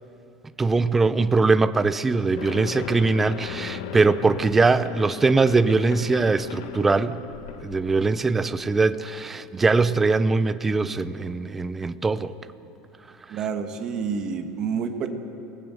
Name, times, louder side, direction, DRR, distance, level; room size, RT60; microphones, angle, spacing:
voice 1, 0.6-7.2 7.6-12.3, right 3 dB, 10° right, 13 dB, 0.6 m, -21 dB
sound 1, 2.4-8.4, left 9 dB, 70° left, 1.2 m, -37 dB
voice 2, 13.3-15.1, right 6 dB, 30° right, 5 dB, 1.8 m, -28 dB
29.0 x 20.0 x 7.9 m, 2.7 s
cardioid pair, 175°, 2 cm